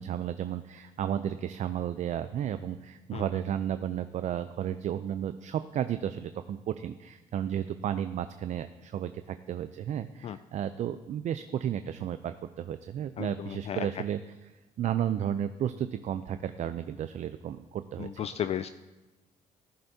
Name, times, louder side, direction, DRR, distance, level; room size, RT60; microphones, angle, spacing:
voice 1, 0.0-14.2 14.8-18.2, right 10 dB, 55° right, 11 dB, 0.5 m, -33 dB
voice 2, 13.2-14.0 18.0-18.7, left 10 dB, 45° left, 11 dB, 0.4 m, -34 dB
14.5 x 11.0 x 2.8 m, 1.1 s
supercardioid pair, 80°, 14 cm